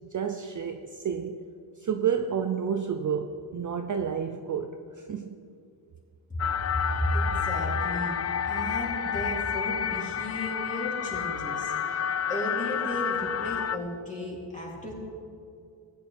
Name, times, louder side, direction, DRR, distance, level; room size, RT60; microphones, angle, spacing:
voice 1, 0.1-1.4 1.8-4.7 5.1-5.3, right 7 dB, 40° right, 5 dB, 0.6 m, -30 dB
sound 1, 6.4-13.8, left 8 dB, 35° left, 0.4 m, -30 dB
voice 2, 6.9-15.0, left 1 dB, 15° left, -4 dB, 3.2 m, -34 dB
15.0 x 9.6 x 3.5 m, 2.4 s
cardioid pair, 85°, 48 cm